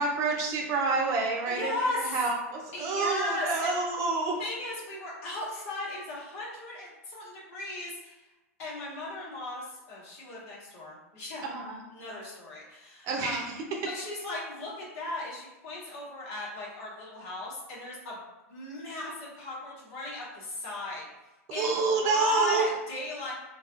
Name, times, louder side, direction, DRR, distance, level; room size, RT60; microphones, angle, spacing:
voice 1, 0.0-4.4 11.4-11.8 13.0-13.5 21.5-22.7, right 3 dB, 40° right, 1 dB, 0.6 m, -28 dB
voice 2, 1.4-2.2 2.7-3.8 4.4-8.2 8.6-11.4 11.9-13.5 13.8-18.2 18.5-21.1 21.5-23.3, left 2 dB, 65° left, -6 dB, 1.5 m, -36 dB
3.3 x 2.4 x 2.5 m, 1.1 s
hypercardioid pair, 95°, 8 cm